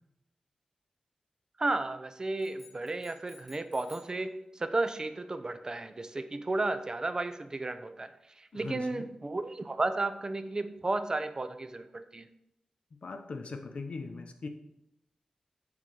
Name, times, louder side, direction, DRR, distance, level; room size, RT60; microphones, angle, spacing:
voice 1, 1.6-8.1 8.4-12.3, right 2 dB, 35° right, 10 dB, 0.6 m, -33 dB
sound 1, 2.4-4.2, left 2 dB, 5° left, 2.1 m, -56 dB
voice 2, 8.5-9.1 13.0-14.5, left 4 dB, 65° left, 6 dB, 0.9 m, -40 dB
7.4 x 3.8 x 6.2 m, 0.83 s
wide cardioid pair, 80°, 2 cm